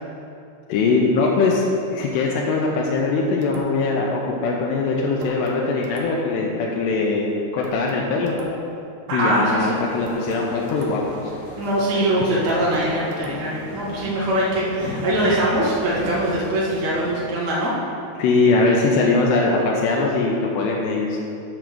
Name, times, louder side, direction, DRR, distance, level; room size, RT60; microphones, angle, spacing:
voice 1, 0.7-1.6 1.9-7.3 7.5-8.3 9.1-11.0 18.2-21.2, left 3 dB, 80° left, -2 dB, 2.8 m, -21 dB
sound 1, 3.4-4.0 5.2-6.4 7.6-8.9 10.1-11.3 12.5-13.7, right 4 dB, 85° right, 3.1 m, -41 dB
voice 2, 9.1-9.7 11.6-17.8, right 1 dB, 40° right, -7 dB, 1.5 m, -22 dB
sound 2, 9.5-17.2, left 2 dB, 60° left, 4.0 m, -36 dB
7.8 x 5.9 x 6.6 m, 2.7 s
omnidirectional pair, 5.0 m